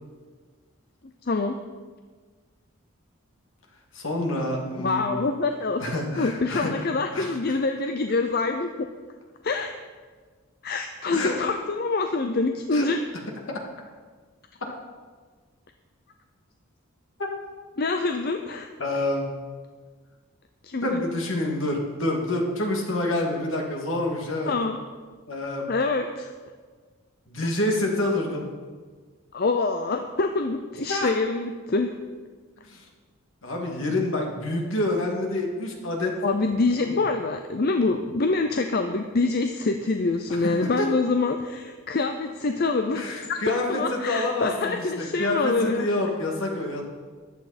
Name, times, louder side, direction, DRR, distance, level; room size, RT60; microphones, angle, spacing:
voice 1, 1.3-1.6 4.8-5.8 6.2-8.9 9.4-9.7 10.6-13.0 17.8-18.7 20.6-21.0 24.5-24.8 25.7-26.3 27.4-27.5 29.3-31.9 33.7-33.8 36.2-45.9, left 3 dB, 45° left, 6 dB, 0.6 m, -25 dB
voice 2, 3.9-5.2 5.8-6.9 7.1-7.6 11.1-11.4 12.7-12.9 13.5-13.6 18.8-19.3 20.8-24.5 25.3-25.7 27.3-28.5 30.9-31.1 32.6-32.8 33.4-36.2 36.9-37.0 40.3-40.9 42.9-46.8, left 1 dB, 65° left, 0 dB, 2.3 m, -27 dB
14.5 x 10.5 x 4.3 m, 1.5 s
head